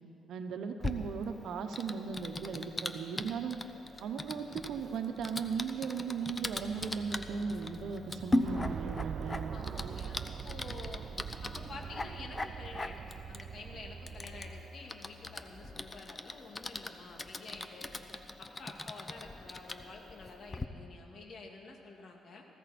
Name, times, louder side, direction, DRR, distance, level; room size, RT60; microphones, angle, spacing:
voice 1, 0.3-3.6 4.0-9.5, right 6 dB, 75° right, 7 dB, 1.0 m, -37 dB
Typing, 0.8-20.6, left 2 dB, 20° left, 0.8 m, -40 dB
sound 1, 6.6-15.9, right 5 dB, 5° left, 4.4 m, -53 dB
sound 2, 8.4-14.7, right 7 dB, 55° right, 0.3 m, -42 dB
voice 2, 9.5-11.0 11.4-17.9 18.4-22.5, left 3 dB, 55° left, 1 dB, 2.3 m, -49 dB
19.0 x 16.0 x 4.3 m, 2.5 s
cardioid pair, 90°, 0 cm